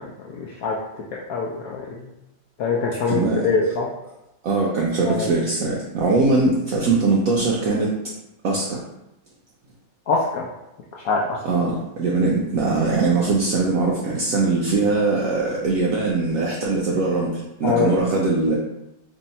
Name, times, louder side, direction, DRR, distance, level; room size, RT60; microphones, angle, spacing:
voice 1, 0.2-0.7 1.3-2.0 2.6-3.9 5.0-5.3 10.1-10.5 11.0-11.4 17.6-18.0, left 4 dB, 75° left, -3 dB, 0.8 m, -23 dB
voice 2, 3.0-3.5 4.4-7.9 8.4-8.8 11.4-18.6, right 3 dB, 75° right, -3 dB, 0.7 m, -21 dB
3.1 x 2.7 x 4.1 m, 0.90 s
omnidirectional pair, 2.0 m